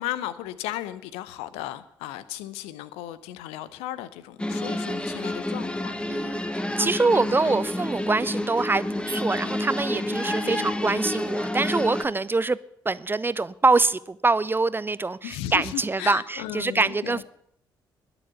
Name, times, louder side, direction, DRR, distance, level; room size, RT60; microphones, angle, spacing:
voice 1, 0.0-6.4 6.8-7.6 10.4-10.7 15.2-17.2, left 13 dB, 65° left, 0.7 m, -36 dB
sound 1, 4.4-12.1, left 1 dB, 10° left, 1.3 m, -29 dB
voice 2, 6.1-6.4 6.8-12.6 12.8-17.2, right 3 dB, 20° right, 0.5 m, -24 dB
21.0 x 7.1 x 5.8 m
figure-of-eight pair, 40°, 11 cm